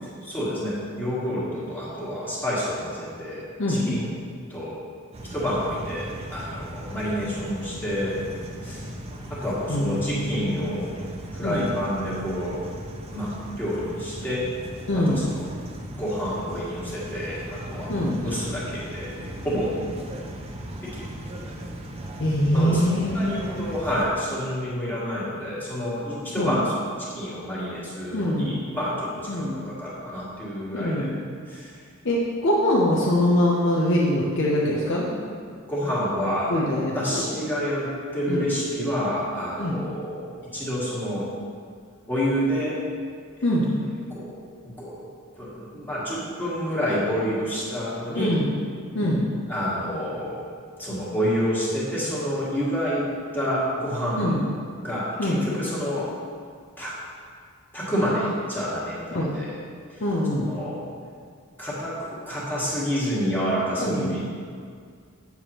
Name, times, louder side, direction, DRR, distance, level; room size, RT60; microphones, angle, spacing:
voice 1, 0.0-4.1 4.5-4.7 5.3-8.2 8.6-8.9 9.3-10.9 11.3-12.6 13.1-13.3 13.6-14.5 14.9-15.4 15.9-17.9 18.2-19.1 19.4-19.8 20.8-21.1 22.5-26.7 27.0-31.1 31.5-31.7 35.7-36.5 36.9-41.3 42.1-42.8 44.1-44.3 44.8-44.9 45.4-48.4 49.5-50.4 50.8-53.1 53.3-54.4 54.8-56.1 56.8-57.0 57.7-59.6 59.9-60.0 60.4-60.8 61.6-64.2, equal, 10° left, -9 dB, 1.7 m, -28 dB
voice 2, 3.6-4.0 9.7-10.6 11.4-11.7 14.9-15.3 17.9-18.2 22.2-23.3 26.4-26.6 28.1-28.6 29.3-29.6 30.7-31.2 32.0-35.4 36.5-37.3 38.3-38.5 39.6-39.8 43.4-43.8 48.2-48.6 48.9-49.3 54.2-54.4 55.2-55.5 59.1-59.4 60.0-60.5 63.8-64.2, left 1 dB, 60° left, -5 dB, 0.8 m, -23 dB
sound 1, 5.1-24.1, right 1 dB, 30° right, 0.6 m, -37 dB
8.2 x 7.0 x 3.0 m, 2.1 s
head